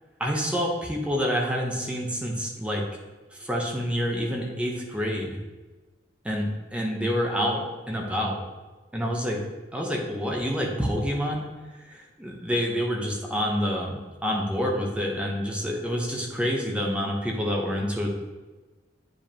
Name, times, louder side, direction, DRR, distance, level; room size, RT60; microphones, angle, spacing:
voice 1, 0.2-2.8 3.3-5.4 6.2-8.4 8.9-9.4 9.7-11.4 11.9-18.1, equal, 5° right, -1 dB, 1.0 m, -27 dB
8.9 x 5.1 x 2.9 m, 1.2 s
head